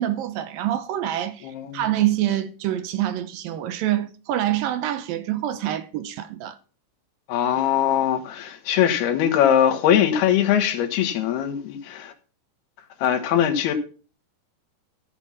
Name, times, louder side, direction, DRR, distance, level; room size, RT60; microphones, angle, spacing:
voice 1, 0.0-6.6, right 12 dB, 80° right, 2.3 m, -26 dB
voice 2, 1.4-1.8 7.3-12.1 13.0-13.7, left 10 dB, 80° left, 3.3 m, -21 dB
14.0 x 6.2 x 5.8 m
omnidirectional pair, 4.5 m